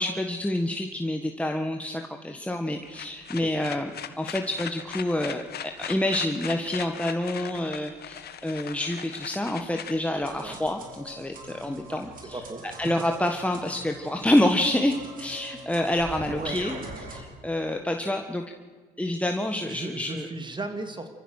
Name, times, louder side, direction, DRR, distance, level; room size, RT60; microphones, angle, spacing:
voice 1, 0.0-3.9 4.2-16.8 17.1-18.4 19.0-20.3, left 1 dB, 5° left, 4 dB, 1.6 m, -28 dB
sound 1, 2.7-10.7, left 9 dB, 55° left, 1.3 m, -39 dB
sound 2, 10.2-17.2, right 2 dB, 45° right, 4.6 m, -42 dB
voice 2, 12.3-12.6 16.4-16.6 19.6-21.1, right 2 dB, 25° right, 7 dB, 2.8 m, -35 dB
28.0 x 14.5 x 6.6 m, 1.5 s
supercardioid pair, 70°, 19 cm